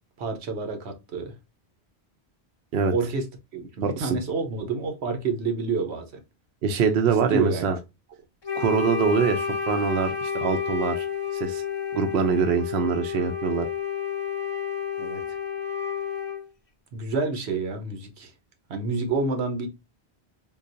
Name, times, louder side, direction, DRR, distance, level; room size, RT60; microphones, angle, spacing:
voice 1, 0.2-1.3 2.9-3.3 3.5-6.0 7.0-7.7 15.0-15.2 16.9-18.3 18.7-19.7, right 4 dB, 85° right, 1.1 m, -28 dB
voice 2, 3.8-4.2 6.6-7.8 8.6-11.1 11.3-11.6 11.9-13.7, right 6 dB, 70° right, 0.8 m, -24 dB
Wind instrument woodwind instrument, 8.4-16.5, left 7 dB, 30° left, 0.7 m, -30 dB
3.8 x 2.4 x 2.5 m
omnidirectional pair, 1.1 m